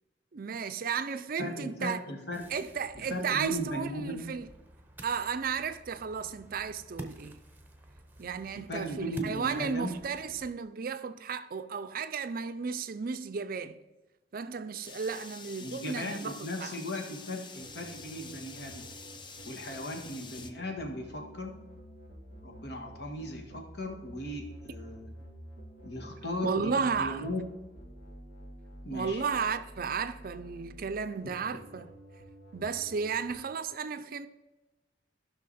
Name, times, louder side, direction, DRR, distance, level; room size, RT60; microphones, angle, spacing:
voice 1, 0.3-2.0 2.5-4.5 5.0-7.4 8.2-13.8 14.3-16.7 26.4-27.2 28.9-31.9 32.5-34.3, right 5 dB, 50° right, 0.5 m, -34 dB
voice 2, 1.4-2.4 3.0-4.2 8.7-9.9 15.6-18.9 19.5-21.6 22.4-25.1 25.8-27.5 28.8-29.2, equal, 60° left, 1.7 m, -37 dB
Ocean, 2.3-10.5, right 1 dB, 10° right, 0.8 m, -49 dB
sound 1, 14.8-20.5, left 4 dB, 25° left, 0.6 m, -47 dB
sound 2, 17.5-33.3, right 1 dB, 90° left, 3.0 m, -50 dB
14.5 x 6.0 x 4.2 m
head